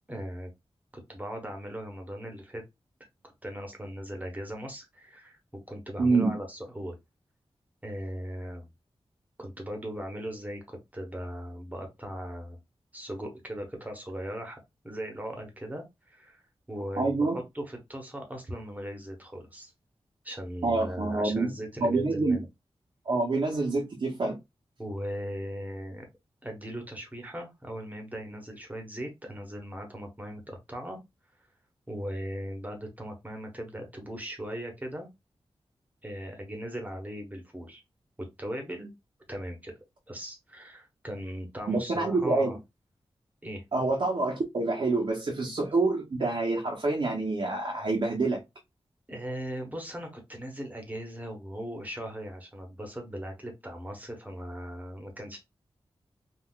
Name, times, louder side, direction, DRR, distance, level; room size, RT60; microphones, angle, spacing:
voice 1, 0.1-0.5 0.9-2.6 3.4-7.0 7.8-8.7 9.4-12.6 12.9-14.6 14.8-19.7 20.2-22.5 24.8-26.1 26.4-31.0 31.9-35.1 36.0-37.8 38.2-38.9 39.3-39.7 40.1-42.6 43.4-43.6 49.1-55.4, equal, 15° right, 0.9 m, -38 dB
voice 2, 6.0-6.3 17.0-17.4 20.6-21.5 21.8-22.4 23.1-24.4 41.7-42.6 43.7-48.4, right 3 dB, 50° right, 0.7 m, -27 dB
3.7 x 2.4 x 2.3 m
wide cardioid pair, 130°, 10 cm